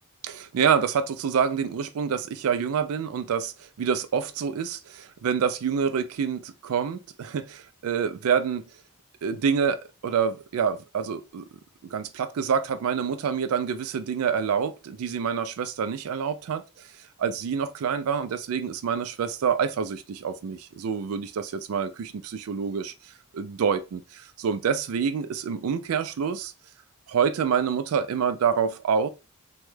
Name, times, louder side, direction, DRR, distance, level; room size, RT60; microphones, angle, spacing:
voice 1, 0.2-8.6 9.2-11.5 11.9-16.9 17.2-22.9 23.3-26.5 27.1-29.1, right 7 dB, 70° right, 0.4 m, -27 dB
3.0 x 2.3 x 3.1 m
head